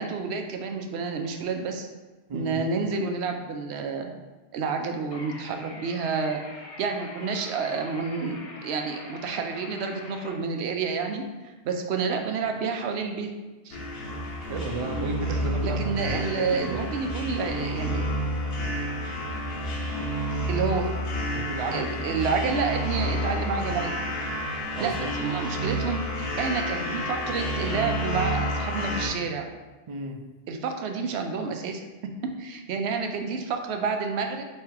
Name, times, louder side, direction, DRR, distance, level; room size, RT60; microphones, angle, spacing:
voice 1, 0.0-1.9 2.3-4.1 4.5-6.4 6.8-13.3 13.6-13.8 15.6-18.1 20.5-20.9 21.7-23.9 24.8-24.9 25.2-29.5 30.5-31.8 32.2-34.4, right 5 dB, 90° right, 4 dB, 0.9 m, -29 dB
voice 2, 2.3-2.6 14.5-16.8 21.3-22.0 22.9-23.1 24.8-25.1 29.9-30.2, right 2 dB, 55° right, 4 dB, 0.3 m, -33 dB
sound 1, 5.1-10.3, left 2 dB, 40° left, 0.5 m, -44 dB
sound 2, 13.7-29.1, equal, 70° left, 1.0 m, -30 dB
3.5 x 3.2 x 4.5 m, 1.2 s
omnidirectional pair, 1.1 m